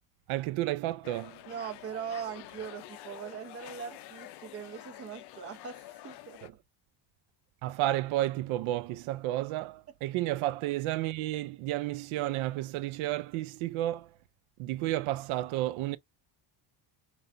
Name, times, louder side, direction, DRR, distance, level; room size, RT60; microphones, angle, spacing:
voice 1, 0.3-1.4 7.6-14.1 14.6-16.0, right 15 dB, 80° right, 0.5 m, -31 dB
sound 1, 1.0-6.5, left 14 dB, 55° left, 0.5 m, -48 dB
voice 2, 1.5-6.4, right 7 dB, 30° right, 0.8 m, -40 dB
5.5 x 2.5 x 2.5 m
cardioid pair, 140°, 48 cm